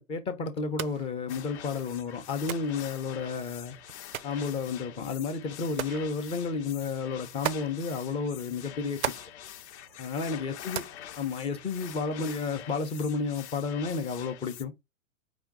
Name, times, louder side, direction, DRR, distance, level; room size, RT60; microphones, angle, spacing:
voice 1, 0.0-3.8 4.2-9.0 10.0-10.8 11.2-14.7, left 4 dB, 15° left, 0.5 m, -32 dB
sound 1, 0.6-12.1, right 11 dB, 85° right, 0.5 m, -41 dB
sound 2, 1.3-14.6, left 11 dB, 55° left, 0.7 m, -46 dB
5.0 x 2.1 x 3.5 m
hypercardioid pair, 120°, 41 cm